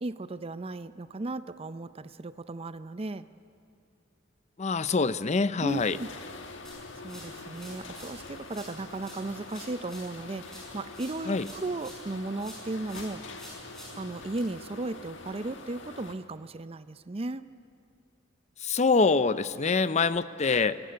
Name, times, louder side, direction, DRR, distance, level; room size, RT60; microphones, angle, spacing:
voice 1, 0.0-3.3 5.6-6.1 7.0-13.2 14.0-17.4, right 2 dB, 30° right, 13 dB, 0.5 m, -36 dB
voice 2, 4.6-6.0 11.3-11.5 18.6-20.8, left 4 dB, 35° left, 14 dB, 0.6 m, -25 dB
sound 1, 5.7-16.1, left 3 dB, 75° left, 1.5 m, -44 dB
sound 2, 6.6-8.2 8.5-12.1 12.4-14.4, equal, ahead, 6.7 m, -49 dB
25.0 x 17.0 x 7.9 m, 2.5 s
head